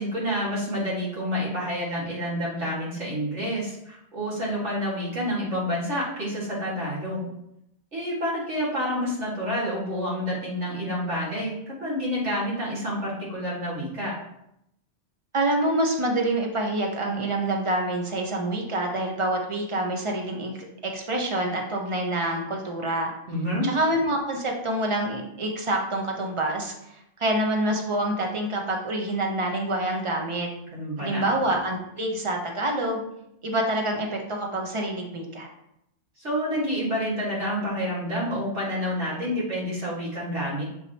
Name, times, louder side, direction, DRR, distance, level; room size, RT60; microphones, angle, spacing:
voice 1, 0.0-7.3 7.9-14.1 23.3-23.7 30.7-31.3 36.2-40.6, equal, 80° right, -7 dB, 2.3 m, -28 dB
voice 2, 15.3-23.1 23.6-30.5 31.0-33.0 33.4-35.5, right 1 dB, 30° right, 1 dB, 1.0 m, -27 dB
7.3 x 4.8 x 2.9 m, 0.79 s
omnidirectional pair, 1.2 m